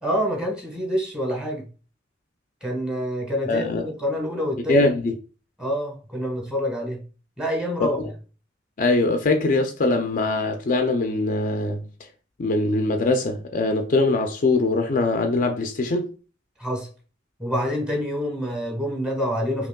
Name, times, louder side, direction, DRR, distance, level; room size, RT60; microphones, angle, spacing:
voice 1, 0.0-1.6 2.6-4.9 5.6-7.0 7.4-8.0 16.6-16.9 17.4-19.7, equal, 5° right, 1.2 m, -27 dB
voice 2, 3.5-3.8 4.7-5.1 7.8-8.1 8.8-11.8 12.4-16.1, left 2 dB, 45° left, 0.4 m, -22 dB
5.1 x 2.9 x 2.2 m
head